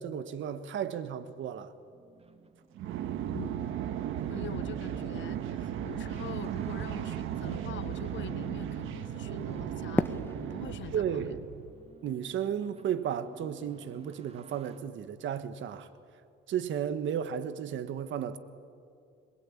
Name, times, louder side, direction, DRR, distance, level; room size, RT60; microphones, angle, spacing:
voice 1, 0.0-1.7 10.9-11.4 12.0-15.9 16.5-18.4, right 9 dB, 75° right, 1.5 m, -34 dB
sound 1, 1.7-14.8, right 3 dB, 30° right, 2.2 m, -55 dB
sound 2, 2.8-11.7, right 10 dB, 90° right, 1.3 m, -36 dB
voice 2, 3.3-3.7 4.3-11.3, left 11 dB, 70° left, 0.9 m, -45 dB
Fireworks, 9.9-13.0, left 2 dB, 10° left, 1.2 m, -36 dB
27.0 x 22.0 x 8.7 m
cardioid pair, 90°, 20 cm